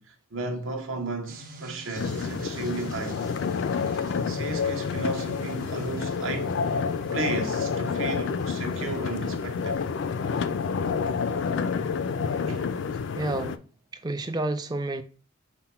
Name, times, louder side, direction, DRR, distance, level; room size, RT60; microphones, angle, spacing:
voice 1, 0.0-3.2 4.2-6.5 7.1-9.8 10.8-11.0 12.5-12.7, right 3 dB, 70° right, 0.9 m, -34 dB
sound 1, 1.3-13.4, right 1 dB, 40° right, 1.1 m, -49 dB
sound 2, 2.0-13.6, left 5 dB, 60° left, 0.3 m, -29 dB
voice 2, 13.1-13.6 14.0-15.0, right 2 dB, 20° right, 0.3 m, -29 dB
5.7 x 2.1 x 4.3 m
head